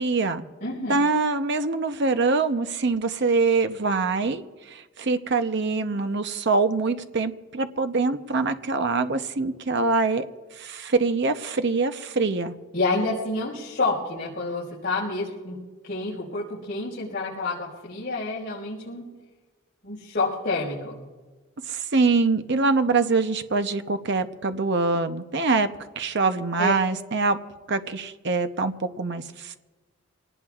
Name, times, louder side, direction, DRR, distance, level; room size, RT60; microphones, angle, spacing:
voice 1, 0.0-0.5 0.9-10.3 10.6-12.5 21.7-25.7 26.0-27.4 27.7-29.6, right 3 dB, 55° right, 8 dB, 0.8 m, -24 dB
voice 2, 0.6-1.0 12.7-15.5 15.8-19.0 19.8-21.0 26.6-26.7, left 3 dB, 50° left, -8 dB, 5.0 m, -28 dB
25.5 x 19.0 x 2.5 m, 1.3 s
head